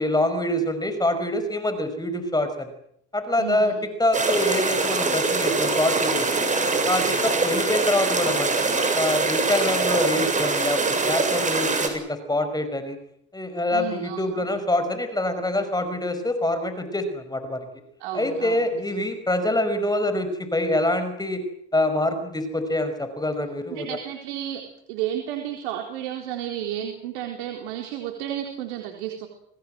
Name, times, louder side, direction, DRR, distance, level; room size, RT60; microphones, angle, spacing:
voice 1, 0.0-2.7 3.1-3.7 4.0-6.5 6.9-13.0 13.3-17.7 18.1-21.4 21.7-24.0, left 1 dB, 10° left, 9 dB, 5.4 m, -25 dB
voice 2, 3.4-3.9 13.7-14.2 18.0-19.0 23.7-24.6 24.9-29.3, right 11 dB, 80° right, 3 dB, 4.2 m, -32 dB
sound 1, 4.1-11.9, right 3 dB, 20° right, 7.1 m, -23 dB
27.5 x 20.0 x 7.9 m, 0.70 s
supercardioid pair, 85°, 33 cm